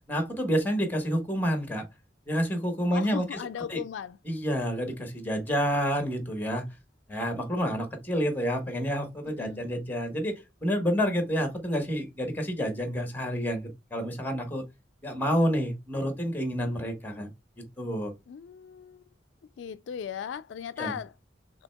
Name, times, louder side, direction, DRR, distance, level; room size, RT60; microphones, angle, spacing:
voice 1, 0.1-1.8 2.3-3.4 3.7-3.8 4.2-6.6 7.1-14.6 15.0-17.3 17.8-18.1 20.8-21.0, equal, 10° left, 1.1 m, -29 dB
voice 2, 2.9-4.2 9.3-9.6 18.3-19.0 19.6-21.1, left 8 dB, 75° left, 0.3 m, -37 dB
6.1 x 3.2 x 2.2 m
head